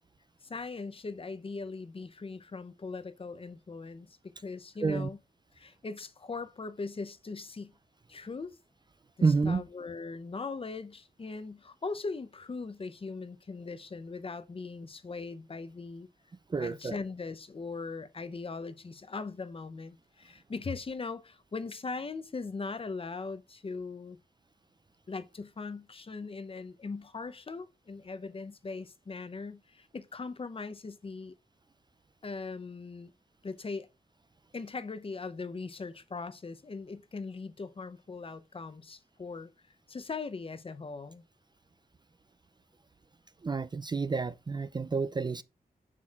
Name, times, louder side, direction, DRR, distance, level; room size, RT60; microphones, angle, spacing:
voice 1, 0.4-5.2 5.5-7.8 8.1-8.6 9.2-16.1 16.6-24.2 25.1-31.3 32.2-33.1 33.4-33.9 34.5-39.5 39.9-41.2, left 4 dB, 35° left, 0.6 m, -40 dB
voice 2, 9.2-9.6 16.5-17.0 43.4-45.4, right 4 dB, 30° right, 0.3 m, -29 dB
7.3 x 6.1 x 2.4 m
wide cardioid pair, 130°, 16 cm